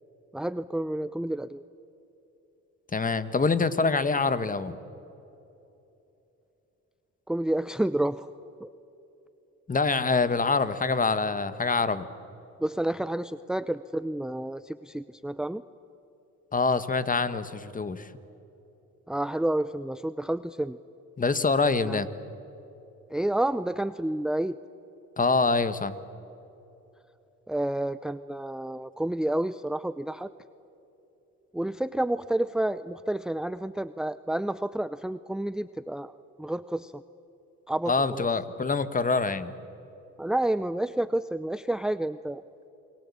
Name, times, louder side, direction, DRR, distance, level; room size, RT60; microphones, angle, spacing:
voice 1, 0.3-1.6 7.3-8.3 8.6-8.7 12.6-15.6 19.1-20.8 21.8-22.0 23.1-24.6 27.5-30.3 31.5-36.1 36.4-37.0 37.7-38.3 40.2-42.4, right 1 dB, ahead, 14 dB, 0.6 m, -29 dB
voice 2, 2.9-4.8 9.7-12.1 16.5-18.1 21.2-22.1 25.2-25.9 37.9-39.5, left 4 dB, 25° left, 13 dB, 1.6 m, -25 dB
28.5 x 22.0 x 8.6 m, 3.0 s
cardioid pair, 90°, 30 cm